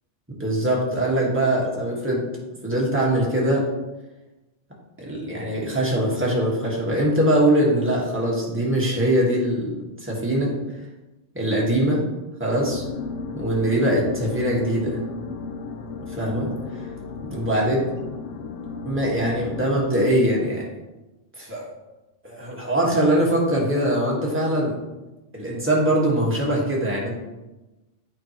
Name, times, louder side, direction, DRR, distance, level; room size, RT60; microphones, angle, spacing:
voice 1, 0.3-2.3 2.6-3.6 5.0-9.7 10.0-10.5 11.3-12.0 12.4-12.8 13.3-15.0 16.1-16.5 17.2-17.8 18.8-20.6 21.4-21.7 22.2-24.7 25.3-27.1, right 1 dB, 10° right, -4 dB, 1.4 m, -22 dB
sound 1, 12.6-19.8, left 3 dB, 85° left, 1.0 m, -34 dB
8.6 x 4.6 x 3.0 m, 1.1 s
omnidirectional pair, 1.2 m